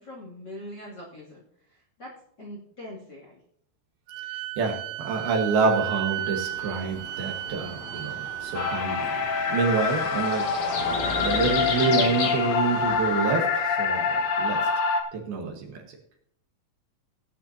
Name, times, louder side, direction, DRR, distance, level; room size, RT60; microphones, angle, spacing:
voice 1, 0.0-1.4 1.7-2.1 2.4-3.4, left 1 dB, 30° left, -4 dB, 2.4 m, -42 dB
Wind instrument woodwind instrument, 4.1-8.8, right 15 dB, 80° right, 2.5 m, -34 dB
voice 2, 4.6-9.2 9.5-10.5 11.2-14.7 15.1-15.8, right 4 dB, 65° right, 2 dB, 3.1 m, -27 dB
sound 1, 6.1-13.4, left 3 dB, 60° left, 1.6 m, -34 dB
sound 2, 8.5-15.0, left 5 dB, 75° left, 1.5 m, -26 dB
17.5 x 9.1 x 2.8 m, 0.72 s
omnidirectional pair, 5.0 m